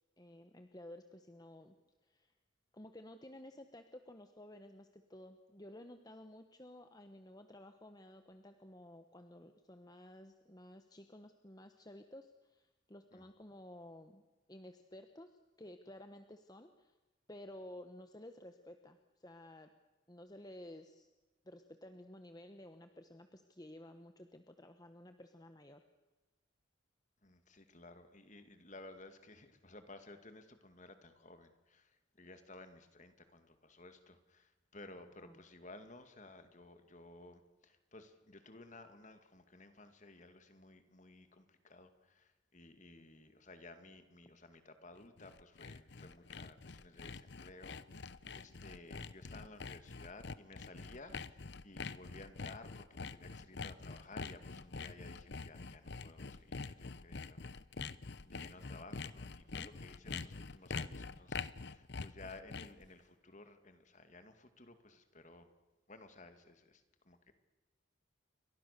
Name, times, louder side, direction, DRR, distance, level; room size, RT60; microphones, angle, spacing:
voice 1, 0.2-1.7 2.0-2.3 2.7-14.2 14.5-17.0 17.3-19.7 20.1-21.1 21.4-25.8 35.2-35.3 59.5-59.7, left 1 dB, 20° left, 7 dB, 1.1 m, -54 dB
voice 2, 27.2-57.8 58.2-65.5 65.9-67.3, left 2 dB, 35° left, 8 dB, 2.2 m, -56 dB
Sawing, 45.0-62.9, left 4 dB, 55° left, 0.8 m, -45 dB
29.0 x 24.0 x 6.8 m, 1.1 s
head